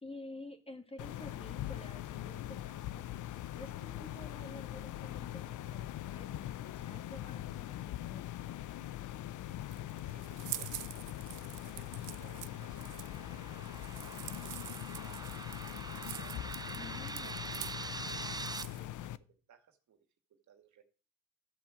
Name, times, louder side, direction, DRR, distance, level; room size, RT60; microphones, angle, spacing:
voice 1, 0.0-8.5 16.7-17.5, left 1 dB, 20° left, 7 dB, 1.9 m, -51 dB
sound 1, 1.0-19.2, left 13 dB, 80° left, 0.6 m, -42 dB
sound 2, 9.5-18.9, right 15 dB, 90° right, 0.7 m, -46 dB
voice 2, 10.0-10.8 11.3-16.5 17.2-20.0 20.3-20.8, right 8 dB, 70° right, 6 dB, 2.1 m, -62 dB
sound 3, 10.9-18.6, right 3 dB, 15° right, 0.5 m, -45 dB
13.5 x 5.0 x 7.7 m, 0.38 s
cardioid pair, 100°, 30 cm